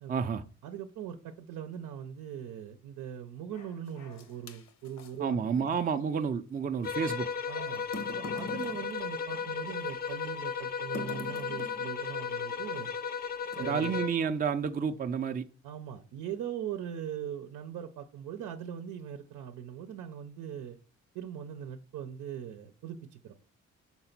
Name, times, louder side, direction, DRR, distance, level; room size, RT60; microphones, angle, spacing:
voice 1, 0.1-0.4 5.2-7.3 13.6-15.5, right 6 dB, 30° right, 0.5 m, -30 dB
voice 2, 0.6-5.7 7.5-7.9 8.2-12.9 13.6-14.0 15.6-20.8 21.1-23.3, right 9 dB, 90° right, 0.7 m, -40 dB
sound 1, 3.5-4.5 7.0-8.1, left 7 dB, 85° left, 1.9 m, -57 dB
sound 2, 3.9-5.2 6.8-6.9 7.8-9.9 10.9-11.9 12.7-13.0 13.5-14.0, left 2 dB, 65° left, 1.0 m, -43 dB
sound 3, 6.8-14.3, left 6 dB, 30° left, 0.5 m, -35 dB
5.9 x 4.0 x 5.8 m
cardioid pair, 90°, 30 cm